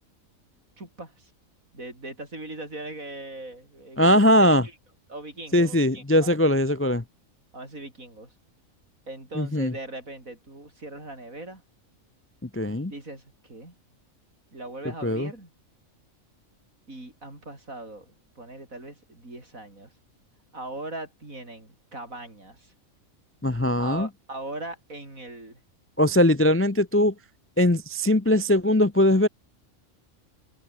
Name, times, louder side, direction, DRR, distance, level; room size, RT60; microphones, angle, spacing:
voice 1, 0.8-1.3 1.7-4.2 4.6-4.7 5.1-6.3 7.5-8.3 9.1-11.6 12.8-13.8 14.5-15.5 16.9-19.9 20.5-22.7 23.8-25.6, right 2 dB, 80° right, 7.3 m, -40 dB
voice 2, 4.0-4.6 5.5-7.0 9.4-9.7 12.4-12.9 15.0-15.3 23.4-24.1 26.0-27.1 27.6-29.3, left 1 dB, 15° left, 0.5 m, -20 dB
omnidirectional pair, 1.4 m